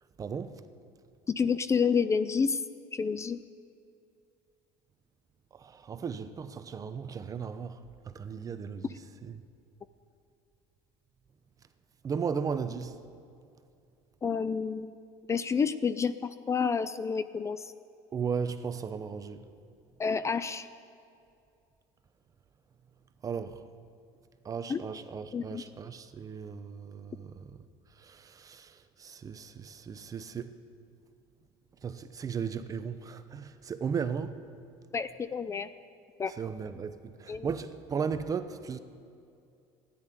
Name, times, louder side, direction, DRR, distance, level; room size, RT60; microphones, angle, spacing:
voice 1, 0.2-0.6 5.5-8.8 9.2-9.4 12.0-13.0 18.1-19.5 23.2-23.6 24.4-27.6 28.0-30.6 31.8-34.4 36.3-38.8, right 6 dB, 30° right, 0.9 m, -36 dB
voice 2, 1.3-2.6 2.9-3.4 14.2-14.9 15.3-17.6 20.0-20.7 24.7-24.8 25.3-25.6 34.9-35.7 36.2-36.3 37.3-37.5, left 6 dB, 25° left, 0.5 m, -29 dB
13.5 x 10.5 x 9.4 m
supercardioid pair, 105°, 12 cm